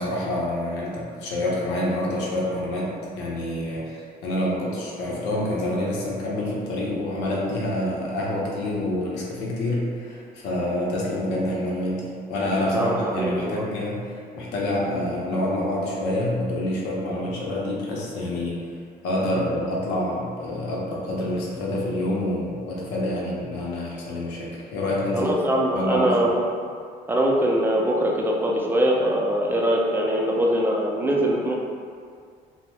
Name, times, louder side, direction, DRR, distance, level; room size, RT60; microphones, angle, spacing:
voice 1, 0.0-18.7 19.0-25.4 25.7-26.2, left 1 dB, 90° left, -4 dB, 0.7 m, -27 dB
voice 2, 12.7-13.7 25.1-26.4 27.1-31.6, equal, 10° right, -2 dB, 0.4 m, -22 dB
2.7 x 2.0 x 3.2 m, 2.1 s
cardioid pair, 110°, 17 cm